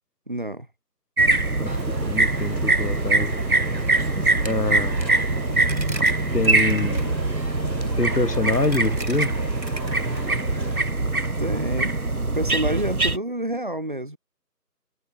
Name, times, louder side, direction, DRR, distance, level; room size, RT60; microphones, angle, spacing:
voice 1, 0.3-0.7 11.4-12.0 12.3-14.2, right 1 dB, 30° right, 2.3 m, -29 dB
sound 1, 1.2-13.2, right 2 dB, 60° right, 2.9 m, -23 dB
Coin (dropping), 1.7-10.8, right 2 dB, 85° right, 7.9 m, -36 dB
voice 2, 2.0-3.3 4.4-5.0 6.3-7.1 8.0-9.3, left 2 dB, 70° left, 2.9 m, -25 dB
sound 2, 4.9-10.8, left 3 dB, 10° left, 3.9 m, -43 dB
figure-of-eight pair, 175°, 50 cm